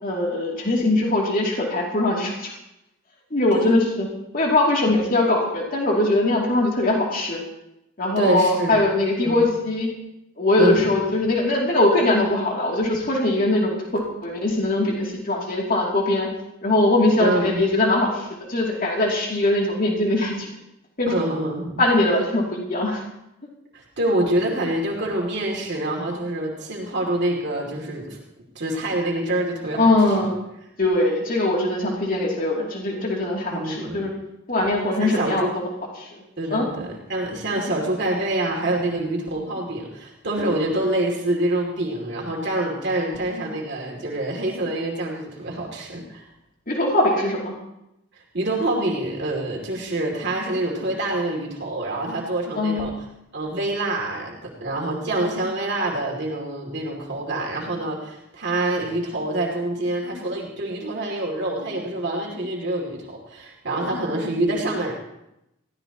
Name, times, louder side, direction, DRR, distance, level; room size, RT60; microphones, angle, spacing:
voice 1, 0.0-2.5 3.3-4.1 4.3-7.4 8.0-9.9 10.4-16.3 16.6-20.5 21.0-21.1 21.8-23.0 29.8-30.3 30.8-34.1 34.5-35.5 36.0-36.2 36.5-36.7 46.7-47.5 52.5-52.8, left 2 dB, 45° left, -2 dB, 2.7 m, -21 dB
voice 2, 8.2-8.8 9.2-9.4 10.6-10.9 17.2-17.6 21.1-21.8 23.7-28.2 28.5-29.9 33.5-34.0 34.6-34.7 35.0-35.5 36.4-46.2 48.1-52.9 53.3-64.9, right 1 dB, 55° right, -2 dB, 2.7 m, -26 dB
21.0 x 15.5 x 3.0 m, 0.86 s
head